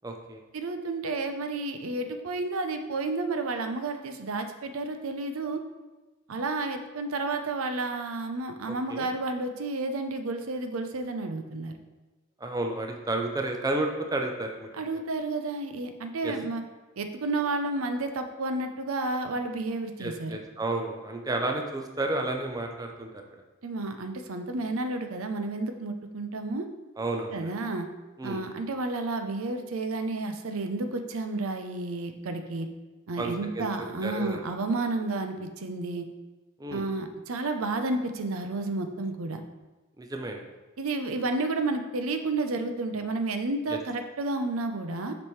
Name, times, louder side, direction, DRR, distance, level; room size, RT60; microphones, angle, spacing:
voice 1, 0.0-0.4 8.7-9.1 12.4-14.7 16.2-16.3 20.0-23.4 27.0-27.5 28.2-28.4 33.2-33.7 34.0-34.4 36.6-36.8 40.0-40.4 43.7-43.8, right 2 dB, 15° right, 3 dB, 0.5 m, -31 dB
voice 2, 0.5-5.6 6.3-11.8 14.8-16.6 17.0-20.4 23.6-26.7 27.3-27.9 28.2-32.7 33.1-36.0 36.7-39.4 40.8-45.1, right 2 dB, 80° right, 7 dB, 0.6 m, -31 dB
7.1 x 5.3 x 3.1 m, 1.2 s
head